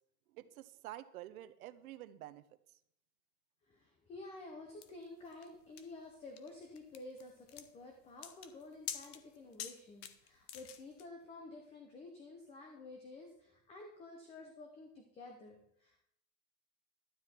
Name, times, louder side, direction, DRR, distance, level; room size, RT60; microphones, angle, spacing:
voice 1, 0.3-2.8, right 14 dB, 65° right, 11 dB, 1.0 m, -50 dB
voice 2, 3.6-16.0, left 2 dB, 15° left, 3 dB, 0.9 m, -51 dB
sound 1, 4.8-11.1, left 10 dB, 40° left, 0.9 m, -48 dB
12.5 x 10.0 x 4.5 m, 0.74 s
supercardioid pair, 170°, 46 cm